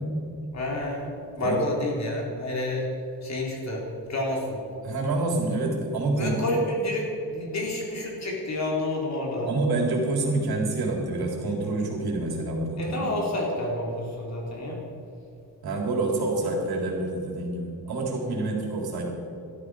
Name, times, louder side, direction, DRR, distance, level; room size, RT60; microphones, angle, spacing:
voice 1, 0.5-2.9 3.2-3.8 4.1-4.6 6.2-9.5 12.8-14.8, left 1 dB, 40° left, -2 dB, 4.1 m, -29 dB
voice 2, 4.8-6.3 9.5-13.1 15.6-19.1, right 2 dB, 65° right, 0 dB, 3.8 m, -27 dB
18.0 x 13.0 x 5.0 m, 2.8 s
cardioid pair, 130°, 41 cm